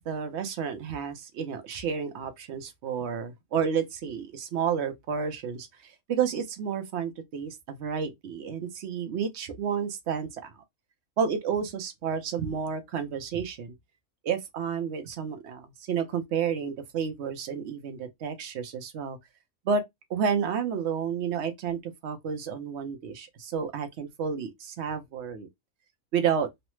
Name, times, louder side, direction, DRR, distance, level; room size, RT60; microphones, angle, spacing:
voice 1, 0.1-10.5 11.2-13.7 14.2-19.2 19.7-19.8 20.1-25.5 26.1-26.5, right 7 dB, 65° right, 0.8 m, -31 dB
3.1 x 2.0 x 3.0 m
omnidirectional pair, 1.4 m